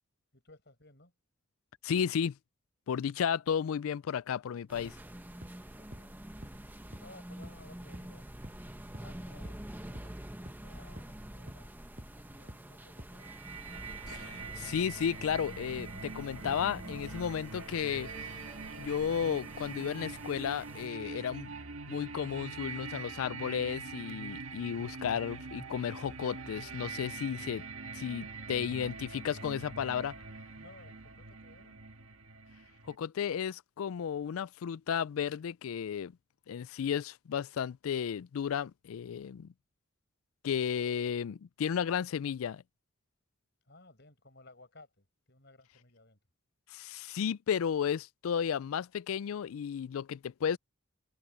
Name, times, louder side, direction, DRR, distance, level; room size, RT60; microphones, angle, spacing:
voice 1, 0.3-1.1 5.7-6.2 6.8-8.2 8.8-11.7 12.1-13.4 30.5-31.8 43.7-46.2, left 2 dB, 55° left, 6.8 m, -58 dB
voice 2, 1.8-2.4 2.9-5.0 14.1-18.3 18.8-21.5 21.9-27.6 27.9-30.1 32.9-36.1 36.5-39.5 40.4-42.6 46.7-50.6, left 8 dB, 80° left, 0.4 m, -33 dB
sound 1, 4.7-20.9, right 1 dB, 10° right, 1.1 m, -47 dB
sound 2, 5.4-5.5 5.9-6.0 6.4-6.5 6.9-7.0 7.4-7.5 7.9-8.0 8.4-8.5 8.9-9.0 9.4-9.5 10.0-10.1 10.5-10.6 11.0-11.1 11.5-11.6 12.0-12.1 12.5-12.6 13.0-13.1, equal, 35° right, 6.0 m, -46 dB
sound 3, 13.2-33.0, right 4 dB, 75° right, 1.6 m, -44 dB
head